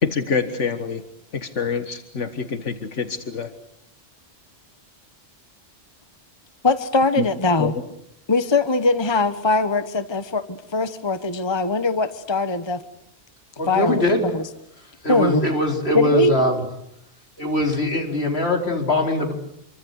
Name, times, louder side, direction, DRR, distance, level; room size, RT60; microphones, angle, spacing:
voice 1, 0.0-1.0 1.3-3.5 7.2-7.3 7.6-7.8, left 5 dB, 85° left, 8 dB, 1.9 m, -26 dB
voice 2, 6.6-7.7 8.3-12.8 13.7-14.5 15.1-15.5 15.9-16.3, left 3 dB, 25° left, 11 dB, 1.2 m, -21 dB
voice 3, 13.6-14.2 15.0-16.6 17.4-19.3, left 1 dB, 60° left, 3 dB, 4.6 m, -21 dB
27.0 x 24.0 x 8.2 m, 0.77 s
omnidirectional pair, 1.2 m